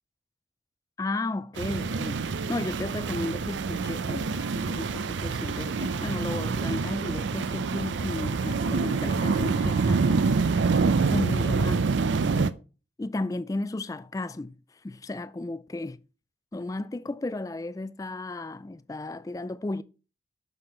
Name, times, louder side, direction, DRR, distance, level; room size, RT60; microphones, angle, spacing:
voice 1, 1.0-10.2 11.1-12.2 13.0-14.6 14.8-16.0 16.5-19.8, left 2 dB, 20° left, 0.3 m, -34 dB
sound 1, 1.6-12.5, right 4 dB, 85° right, 0.5 m, -26 dB
Trumpet, 4.4-11.4, right 2 dB, 35° right, 1.1 m, -49 dB
6.9 x 5.6 x 4.3 m
head